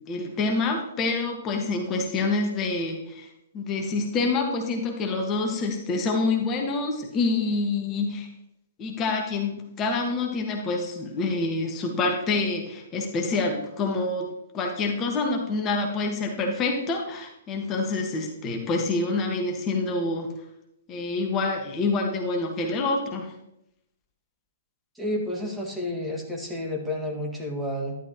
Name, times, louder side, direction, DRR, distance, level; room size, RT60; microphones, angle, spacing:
voice 1, 0.1-3.3 3.5-8.3 8.8-14.3 14.5-20.3 20.9-23.3, left 3 dB, 25° left, 2 dB, 1.6 m, -27 dB
voice 2, 25.0-28.0, left 1 dB, 5° right, -1 dB, 1.9 m, -30 dB
11.5 x 11.5 x 3.0 m, 0.81 s
figure-of-eight pair, 115°, 0 cm